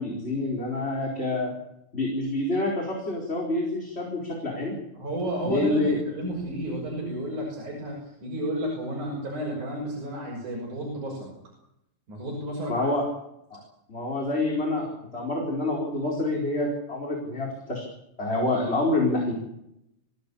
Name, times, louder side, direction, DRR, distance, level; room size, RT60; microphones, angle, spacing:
voice 1, 0.0-1.5 1.9-4.7 5.4-5.9 12.7-13.0 13.5-13.6 13.9-17.8 18.2-19.3, left 2 dB, 20° left, -1 dB, 4.7 m, -27 dB
voice 2, 4.9-11.3 12.1-12.9, right 1 dB, 65° right, -1 dB, 7.6 m, -32 dB
25.5 x 16.5 x 8.6 m, 0.83 s
omnidirectional pair, 3.7 m